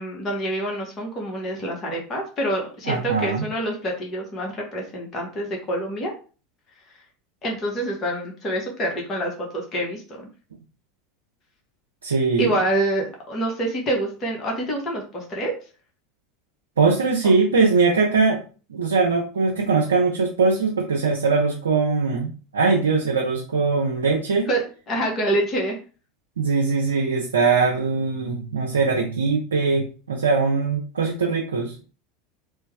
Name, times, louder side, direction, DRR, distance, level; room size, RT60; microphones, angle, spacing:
voice 1, 0.0-6.1 7.4-10.3 12.4-15.5 17.2-17.3 24.5-24.6 24.9-25.8, right 1 dB, 30° left, 0 dB, 1.1 m, -26 dB
voice 2, 2.9-3.4 12.0-12.5 16.8-18.4 18.7-24.5 26.4-31.8, right 4 dB, 80° right, 0 dB, 0.5 m, -21 dB
3.2 x 2.2 x 3.3 m, 0.37 s
figure-of-eight pair, 80°, 0 cm